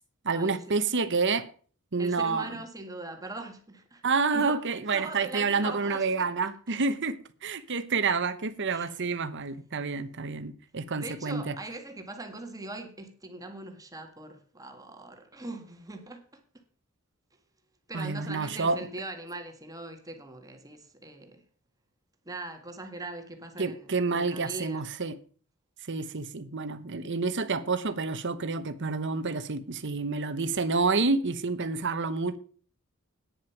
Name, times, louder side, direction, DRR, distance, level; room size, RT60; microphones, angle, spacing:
voice 1, 0.2-1.5 1.9-2.5 4.0-11.5 17.9-18.9 23.6-25.1 25.9-32.4, right 4 dB, 55° right, 1.1 m, -29 dB
voice 2, 2.0-4.0 4.3-6.3 8.7-8.9 11.0-16.4 17.9-21.4 22.3-24.9, right 2 dB, 15° right, 1.8 m, -41 dB
11.0 x 9.9 x 5.8 m
head